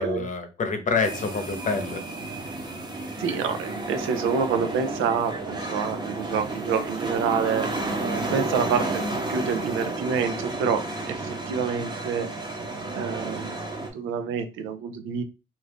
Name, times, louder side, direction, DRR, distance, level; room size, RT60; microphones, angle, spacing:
voice 1, 0.0-2.0, left 4 dB, 40° left, 6 dB, 0.8 m, -27 dB
sound 1, 1.0-13.9, right 2 dB, 20° right, 0.8 m, -31 dB
voice 2, 3.2-7.7 8.0-9.0 9.3-12.3 12.9-13.6 13.9-15.2, right 6 dB, 85° right, 8 dB, 0.5 m, -27 dB
2.6 x 2.4 x 3.5 m, 0.31 s
cardioid pair, 90°, 20 cm